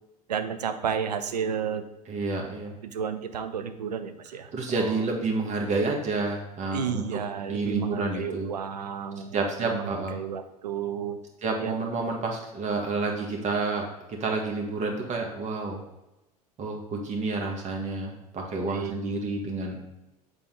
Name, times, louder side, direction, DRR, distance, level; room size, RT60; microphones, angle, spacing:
voice 1, 0.3-1.8 2.8-4.5 4.8-5.0 6.7-11.2 11.6-11.8 18.7-18.9, right 7 dB, 85° right, 9 dB, 0.6 m, -32 dB
voice 2, 2.1-2.7 4.5-8.5 9.3-10.2 11.4-15.8 16.6-19.8, right 3 dB, 35° right, 1 dB, 1.7 m, -29 dB
7.1 x 4.3 x 3.7 m, 0.96 s
hypercardioid pair, 80°, 20 cm